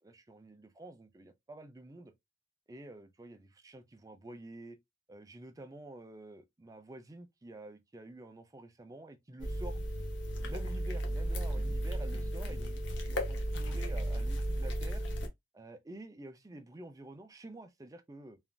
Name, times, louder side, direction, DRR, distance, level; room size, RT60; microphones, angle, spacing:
voice 1, 0.0-2.1 2.7-4.8 5.1-9.8 10.4-15.0 15.5-18.4, right 1 dB, 20° right, 0.4 m, -49 dB
sound 1, 9.4-15.3, right 1 dB, 85° left, 0.8 m, -34 dB
3.2 x 2.4 x 2.3 m
head